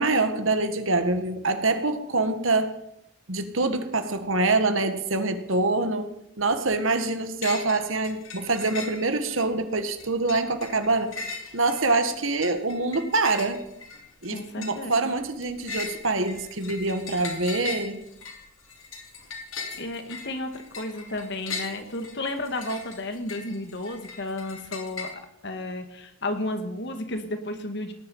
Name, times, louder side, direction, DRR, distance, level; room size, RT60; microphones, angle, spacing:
voice 1, 0.0-2.7 3.3-6.1 6.4-11.1 11.5-13.6 14.2-18.0, right 3 dB, 70° right, 8 dB, 1.7 m, -25 dB
sound 1, 7.4-7.8 8.0-9.4 9.8-25.1, left 4 dB, 75° left, 3.5 m, -39 dB
voice 2, 14.3-15.1 19.8-25.1 25.4-27.9, left 1 dB, 55° left, 7 dB, 1.9 m, -32 dB
18.0 x 11.0 x 5.5 m, 0.78 s
head